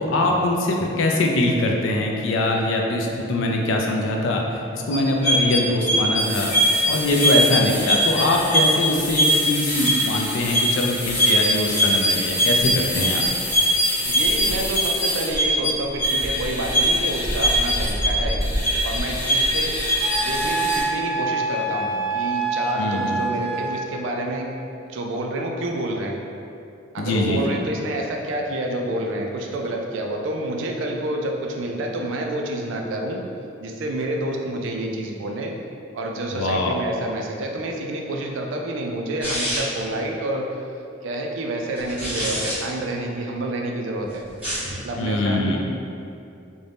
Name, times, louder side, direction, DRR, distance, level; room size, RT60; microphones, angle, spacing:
voice 1, 0.0-4.4 4.7-13.2 22.8-23.2 27.0-27.6 36.3-36.7 45.0-45.6, left 2 dB, 75° left, 0 dB, 0.4 m, -22 dB
sound 1, 4.9-20.8, equal, 60° left, 0.8 m, -22 dB
voice 2, 13.8-19.8 20.2-24.5 24.9-26.2 26.9-33.2 33.6-35.5 35.9-40.6 41.0-44.3 44.7-45.6, right 1 dB, 70° right, 1 dB, 0.3 m, -28 dB
Wind instrument woodwind instrument, 20.0-23.9, right 3 dB, 30° left, 0.9 m, -26 dB
sound 2, 39.2-39.9 41.8-42.6 44.3-44.7, equal, 5° right, 0.7 m, -27 dB
2.6 x 2.1 x 3.2 m, 2.6 s
head